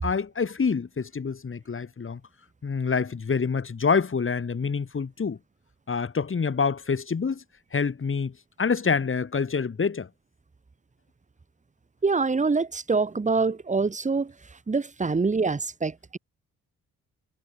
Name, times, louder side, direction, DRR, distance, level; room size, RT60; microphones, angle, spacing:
voice 1, 0.0-2.2 2.6-5.4 5.9-7.4 7.7-10.1, left 5 dB, 35° left, 5.4 m, -26 dB
voice 2, 12.0-14.3 14.7-16.2, right 4 dB, 20° right, 1.5 m, -25 dB
supercardioid pair, 70°, 34 cm